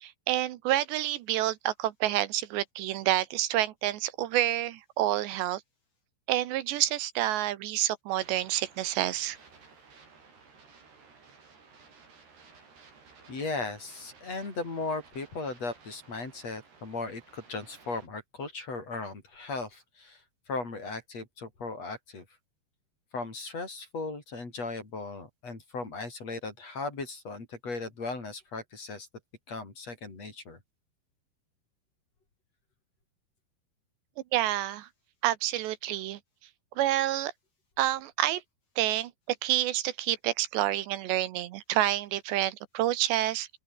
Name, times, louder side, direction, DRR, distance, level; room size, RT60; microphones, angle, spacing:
voice 1, 0.0-5.6 6.3-9.4 34.3-34.9 35.2-36.2 36.8-37.3 37.8-38.4 38.8-39.1 39.4-43.5, right 14 dB, 80° right, 3.2 m, -28 dB
sound 1, 8.1-18.1, right 5 dB, 60° right, 8.7 m, -56 dB
voice 2, 13.3-20.2 20.5-22.2 23.1-29.1 29.5-30.6, left 3 dB, 35° left, 6.5 m, -37 dB
open air
omnidirectional pair, 5.2 m